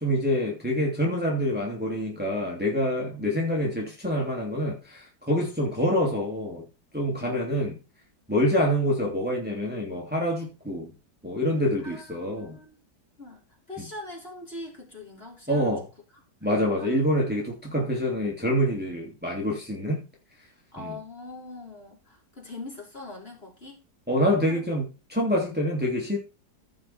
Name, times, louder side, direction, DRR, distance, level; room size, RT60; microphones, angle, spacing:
voice 1, 0.0-6.7 6.9-7.8 8.3-10.9 11.2-12.6 13.8-13.9 15.5-15.9 16.4-20.0 20.8-21.0 24.1-26.2, equal, 5° right, 2.8 m, -26 dB
voice 2, 11.8-12.8 13.2-13.4 13.7-15.7 16.8-17.3 20.7-23.8 24.5-24.6, left 2 dB, 35° left, 3.9 m, -42 dB
14.5 x 5.6 x 4.4 m
omnidirectional pair, 1.8 m